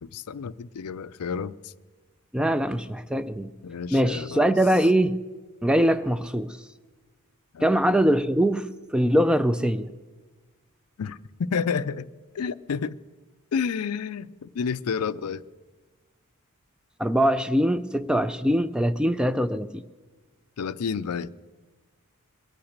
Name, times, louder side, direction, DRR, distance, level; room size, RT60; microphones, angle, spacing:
voice 1, 0.0-1.7 3.6-4.5 7.5-7.7 11.0-12.1 12.3-13.0 13.5-15.4 20.6-21.3, left 6 dB, 75° left, 0.5 m, -30 dB
voice 2, 2.3-3.5 3.9-5.2 5.6-6.6 7.6-8.7 8.9-9.9 17.0-19.8, equal, 5° right, 0.4 m, -22 dB
22.0 x 8.8 x 6.5 m
head